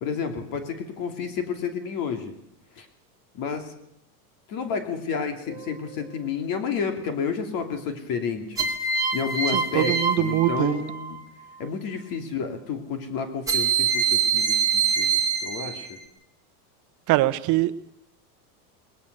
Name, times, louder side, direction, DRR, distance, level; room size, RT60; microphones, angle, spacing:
voice 1, 0.0-2.3 2.8-2.9 3.3-3.7 4.5-8.7 9.1-11.2 11.6-16.0, left 6 dB, 45° left, 6 dB, 2.9 m, -30 dB
sound 1, 5.5-6.0 8.6-11.2 13.5-16.0, right 6 dB, 5° right, 2.5 m, -25 dB
voice 2, 9.5-10.8 17.1-17.7, right 16 dB, 40° right, 13 dB, 1.0 m, -23 dB
20.5 x 19.5 x 6.8 m, 0.75 s
supercardioid pair, 145°, 46 cm